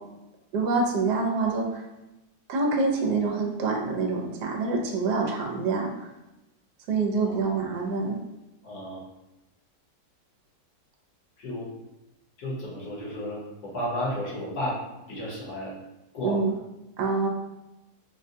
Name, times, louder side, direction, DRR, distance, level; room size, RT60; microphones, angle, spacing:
voice 1, 0.5-1.8 2.5-5.9 6.9-8.2 16.2-16.5 17.0-17.3, right 3 dB, 75° right, 0 dB, 1.2 m, -26 dB
voice 2, 8.6-9.0 11.4-11.7 12.4-14.8 15.1-15.7 16.1-16.4, equal, 60° left, -6 dB, 1.5 m, -32 dB
3.8 x 2.1 x 2.6 m, 0.97 s
omnidirectional pair, 1.9 m